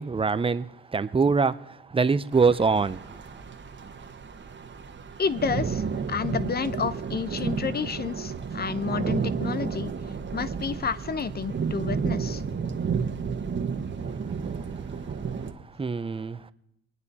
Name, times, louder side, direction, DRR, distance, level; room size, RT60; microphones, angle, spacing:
voice 1, 0.0-3.0 15.8-16.5, right 4 dB, 20° right, 0.6 m, -24 dB
sound 1, 2.3-15.5, right 6 dB, 40° right, 1.4 m, -32 dB
voice 2, 5.2-9.9 10.3-12.4, left 6 dB, 30° left, 0.8 m, -30 dB
26.0 x 9.6 x 4.2 m
cardioid pair, 90°, 30 cm